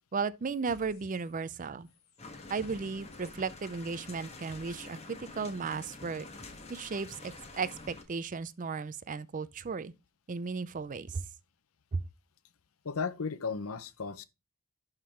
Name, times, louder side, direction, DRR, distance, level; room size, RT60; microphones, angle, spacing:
voice 1, 0.1-1.9 2.5-6.3 6.7-9.9 10.3-11.2 11.9-12.0, right 5 dB, 40° right, 0.5 m, -35 dB
sound 1, 0.7-1.6 1.8-7.9, left 1 dB, 50° left, 1.9 m, -60 dB
sound 2, 2.2-8.0, left 3 dB, 30° left, 1.3 m, -48 dB
voice 2, 12.8-14.2, left 5 dB, 85° left, 0.7 m, -35 dB
11.0 x 3.7 x 4.4 m
head